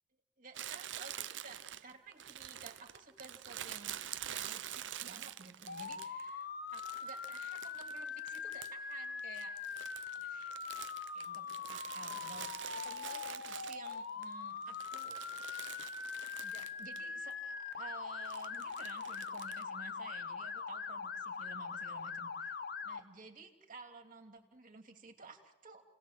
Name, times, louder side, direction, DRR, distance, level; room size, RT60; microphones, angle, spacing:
voice 1, 0.4-9.5 9.8-10.5 11.1-15.2 16.4-25.8, right 4 dB, 45° right, 4 dB, 2.9 m, -54 dB
Crumpling crinkling, 0.5-6.3 6.7-8.9 9.2-14.2 14.6-17.1 17.3-17.4 18.3-19.6, right 11 dB, 75° right, 0.7 m, -47 dB
Motor vehicle (road) / Siren, 5.7-23.0, left 5 dB, 60° left, 1.0 m, -42 dB
29.5 x 18.5 x 7.6 m, 1.1 s
head